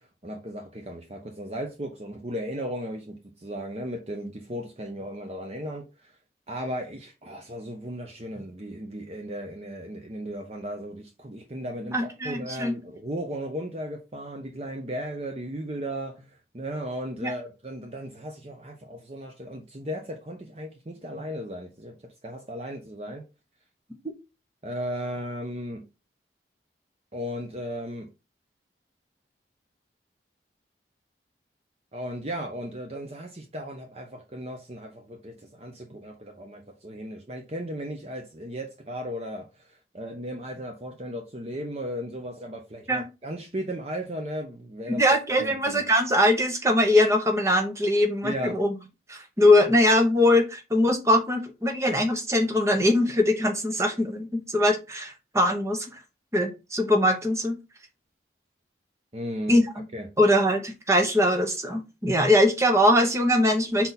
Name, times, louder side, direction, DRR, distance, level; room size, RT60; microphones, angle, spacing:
voice 1, 0.2-6.1 6.5-22.0 22.2-23.2 24.6-25.8 27.1-28.1 31.9-45.0 45.4-45.8 48.2-48.6 59.1-59.6 59.9-60.1, equal, 35° right, 0.7 m, -36 dB
voice 2, 11.9-12.7 17.2-17.3 42.9-43.1 45.0-48.7 49.1-55.9 56.3-57.6 59.5-59.9 60.2-63.9, left 1 dB, 15° right, 1.0 m, -22 dB
5.7 x 4.0 x 4.1 m
head